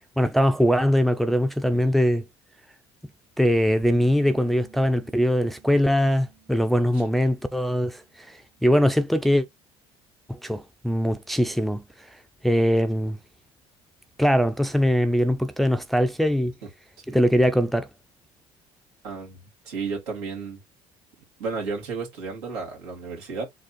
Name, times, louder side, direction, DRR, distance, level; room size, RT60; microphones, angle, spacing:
voice 1, 0.2-2.2 3.4-9.5 10.3-11.8 12.4-13.2 14.2-16.5 17.1-17.9, equal, ahead, 0.5 m, -22 dB
sound 1, 3.8-9.2, right 8 dB, 60° right, 2.4 m, -53 dB
voice 2, 19.0-19.4 19.6-20.6 21.4-23.5, right 4 dB, 90° right, 2.2 m, -32 dB
4.0 x 2.4 x 4.0 m
supercardioid pair, 80°, 13 cm